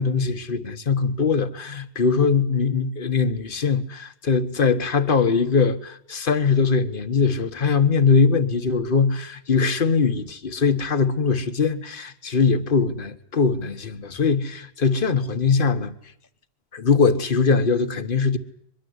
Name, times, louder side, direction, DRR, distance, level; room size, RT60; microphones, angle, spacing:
voice 1, 0.0-15.9 16.7-18.4, left 5 dB, 55° left, 1.4 m, -21 dB
23.5 x 22.0 x 8.0 m
omnidirectional pair, 1.1 m